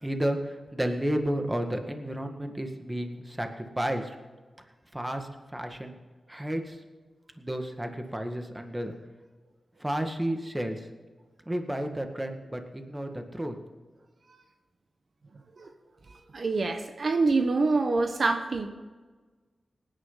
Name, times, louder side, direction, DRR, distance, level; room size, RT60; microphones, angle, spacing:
voice 1, 0.0-4.2 4.9-6.0 6.3-6.8 7.4-8.9 9.8-10.9 11.5-13.5, right 1 dB, 15° right, 5 dB, 1.9 m, -32 dB
voice 2, 16.3-18.7, right 3 dB, 60° right, 5 dB, 1.2 m, -25 dB
19.0 x 10.5 x 4.0 m, 1.4 s
cardioid pair, 60°, 0 cm